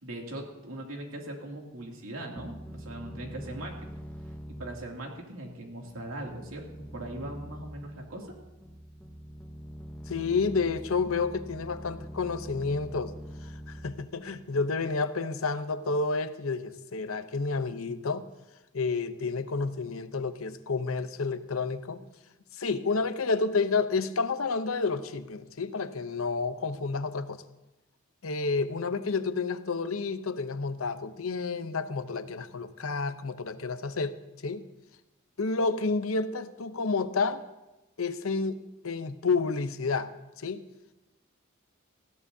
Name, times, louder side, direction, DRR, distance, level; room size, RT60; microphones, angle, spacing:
voice 1, 0.0-4.0 4.5-8.3, right 1 dB, 80° right, 0 dB, 2.6 m, -40 dB
sound 1, 2.4-14.8, equal, 5° left, 0.8 m, -44 dB
voice 2, 10.1-13.1 13.7-18.3 18.7-22.1 22.6-27.4 28.2-34.1 34.4-34.6 35.4-37.4 38.0-40.1 40.4-40.6, left 4 dB, 80° left, 11 dB, 0.7 m, -30 dB
19.5 x 15.0 x 2.7 m, 1.0 s
head